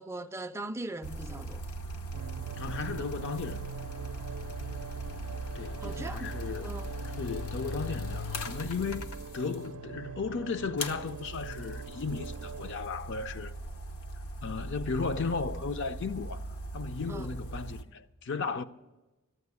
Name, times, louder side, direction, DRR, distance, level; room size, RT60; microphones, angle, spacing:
voice 1, 0.0-1.7 5.8-6.3 6.6-6.9 17.1-17.4, right 2 dB, 10° right, 0.3 m, -40 dB
sound 1, 1.0-9.7 10.8-17.8, equal, 85° left, 0.9 m, -39 dB
sound 2, 2.1-12.7, right 5 dB, 80° right, 0.4 m, -43 dB
voice 2, 2.6-3.7 5.5-6.7 7.2-13.5 14.4-16.4 16.7-18.6, left 4 dB, 55° left, 0.5 m, -35 dB
12.5 x 7.9 x 9.5 m
head